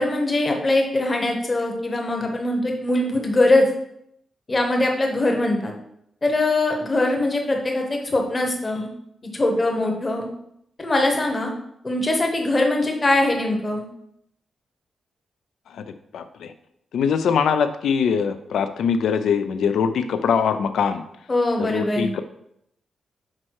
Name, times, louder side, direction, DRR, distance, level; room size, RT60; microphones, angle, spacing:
voice 1, 0.0-3.7 4.5-5.7 6.2-8.9 9.3-10.3 10.8-11.5 11.8-13.8 21.3-22.1, left 2 dB, 20° left, 2 dB, 1.0 m, -22 dB
voice 2, 16.1-16.5 16.9-21.0 21.6-22.2, left 6 dB, 85° left, 10 dB, 0.5 m, -22 dB
6.0 x 4.4 x 4.6 m, 0.75 s
wide cardioid pair, 180°, 0 cm